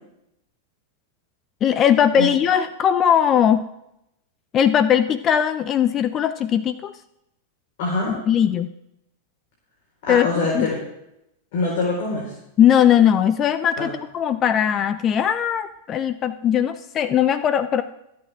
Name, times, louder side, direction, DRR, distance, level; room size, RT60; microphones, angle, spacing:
voice 1, 1.6-3.6 4.5-6.9 8.3-8.7 10.1-10.3 10.5-10.7 12.6-17.8, left 9 dB, 30° left, 13 dB, 0.6 m, -19 dB
voice 2, 7.8-8.1 10.1-10.8 11.5-12.3 13.8-13.9, left 3 dB, 60° left, -4 dB, 4.6 m, -24 dB
22.0 x 8.8 x 3.6 m, 0.82 s
hypercardioid pair, 120°, 0 cm